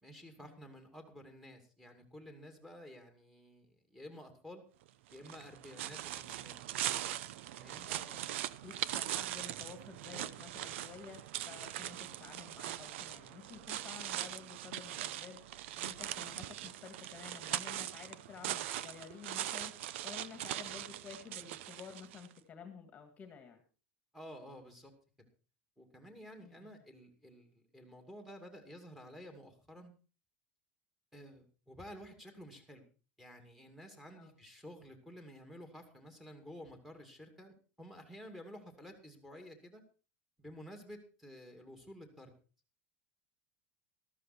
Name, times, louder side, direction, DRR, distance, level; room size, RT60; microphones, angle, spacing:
voice 1, 0.0-4.6 5.1-6.6 7.4-7.9 10.1-10.2 24.1-24.9 25.2-25.3 25.8-29.9 31.1-32.8 33.2-39.8 40.4-42.3, equal, 5° right, 5 dB, 2.6 m, -52 dB
sound 1, 5.1-22.3, right 13 dB, 85° right, 0.7 m, -41 dB
voice 2, 7.8-8.3 8.6-15.4 15.8-23.6 26.4-26.7 34.1-34.3, left 6 dB, 20° left, 7 dB, 1.8 m, -52 dB
13.5 x 13.0 x 4.3 m, 0.36 s
supercardioid pair, 155°, 6 cm